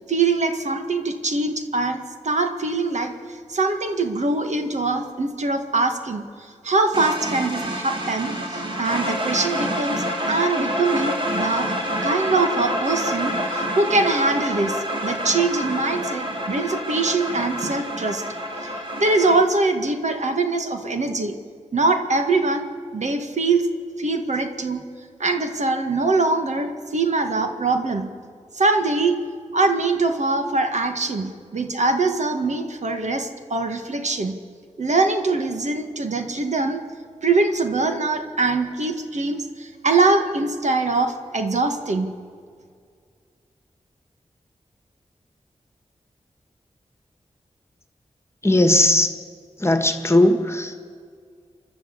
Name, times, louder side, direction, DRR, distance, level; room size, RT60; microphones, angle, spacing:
voice 1, 0.1-6.2 6.6-11.7 12.0-18.2 18.6-21.4 21.7-23.7 24.0-24.9 25.2-28.1 28.5-29.2 29.5-34.4 34.8-36.8 37.2-42.1, right 3 dB, 70° right, 5 dB, 1.9 m, -23 dB
sound 1, 6.9-19.4, equal, 40° right, 3.3 m, -27 dB
voice 2, 48.4-49.1 49.6-50.9, left 1 dB, 20° left, 7 dB, 1.8 m, -18 dB
29.0 x 12.0 x 8.4 m, 2.1 s
wide cardioid pair, 95°, 13 cm